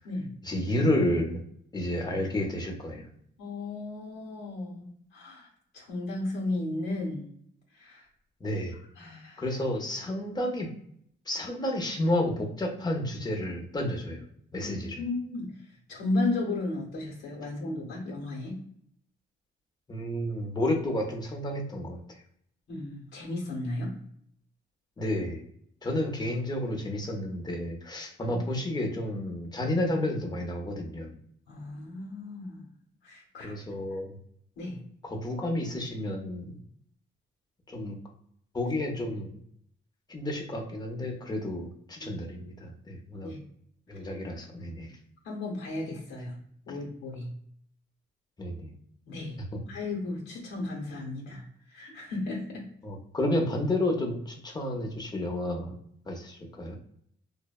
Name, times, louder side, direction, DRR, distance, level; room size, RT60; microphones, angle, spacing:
voice 1, 0.4-1.4 1.7-3.1 8.4-8.8 9.4-10.7 11.3-14.2 14.5-15.0 19.9-22.0 25.0-25.4 25.8-31.1 33.4-34.1 35.1-36.6 37.7-38.0 38.5-39.3 40.1-43.3 43.9-44.9 48.4-48.7 52.8-55.7 56.1-56.8, left 1 dB, 20° left, 1 dB, 0.6 m, -31 dB
voice 2, 3.4-4.9 5.1-5.5 5.7-7.3 7.8-8.0 9.0-9.4 14.6-15.6 15.9-18.6 22.7-23.9 31.5-32.6 33.0-33.5 34.6-34.8 42.0-42.1 43.2-43.4 45.2-46.4 46.6-47.3 49.1-49.4 49.7-51.4 51.7-52.6, left 2 dB, 80° left, -3 dB, 0.8 m, -34 dB
2.5 x 2.1 x 2.3 m, 0.68 s
cardioid pair, 90°, 20 cm